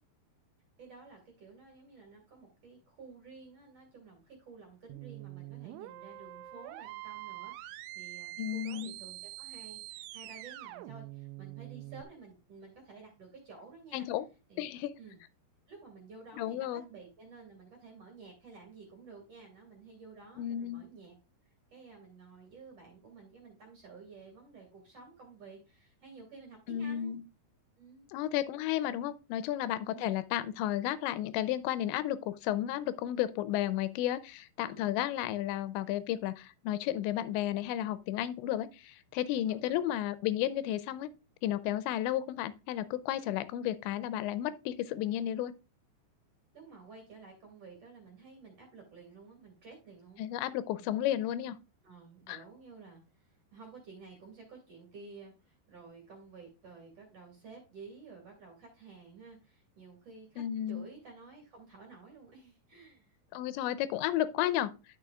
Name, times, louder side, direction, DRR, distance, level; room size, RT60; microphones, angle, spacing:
voice 1, 0.8-14.1 14.5-14.7 15.0-15.2 15.7-21.1 21.4-27.2 27.8-28.1 29.9-30.2 34.7-34.9 39.5-39.8 46.5-50.2 50.8-50.9 51.8-63.2, right 4 dB, 45° right, 2.3 m, -52 dB
sound 1, 4.9-12.0, right 17 dB, 85° right, 2.8 m, -45 dB
voice 2, 8.4-9.0 13.9-14.2 14.6-15.0 16.4-16.8 20.4-20.9 26.7-27.2 28.1-41.1 41.4-45.5 50.2-51.6 52.3-52.4 60.4-60.9 63.3-64.7, left 12 dB, 85° left, 2.7 m, -33 dB
11.0 x 6.5 x 2.3 m
omnidirectional pair, 5.3 m